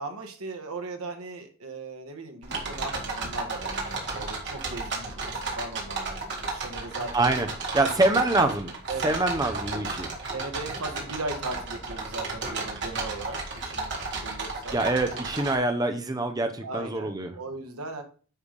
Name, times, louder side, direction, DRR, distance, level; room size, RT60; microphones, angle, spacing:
voice 1, 0.0-7.3 7.8-7.9 8.9-9.1 10.3-14.8 16.6-18.0, right 3 dB, 75° right, 5 dB, 1.4 m, -38 dB
sound 1, 2.4-15.5, right 3 dB, 55° right, 2.2 m, -33 dB
voice 2, 7.1-7.5 7.7-8.7 9.0-10.1 14.7-17.3, right 2 dB, 15° right, 6 dB, 0.7 m, -25 dB
9.7 x 3.4 x 5.2 m, 0.40 s
head